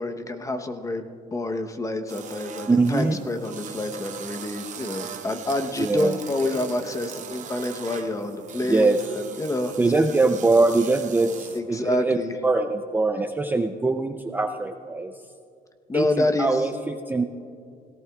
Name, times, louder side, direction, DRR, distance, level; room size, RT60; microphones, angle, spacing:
voice 1, 0.0-9.0 9.4-10.0 11.5-12.4 15.9-16.6, left 2 dB, 20° left, 7 dB, 0.9 m, -28 dB
sound 1, 2.1-11.6, right 8 dB, 45° right, 0.9 m, -40 dB
voice 2, 2.7-3.2 5.8-6.2 8.7-9.0 9.8-12.2 12.4-15.1 15.9-17.3, right 3 dB, 10° right, 6 dB, 0.4 m, -22 dB
17.5 x 17.5 x 2.3 m, 2.4 s
cardioid pair, 110°, 17 cm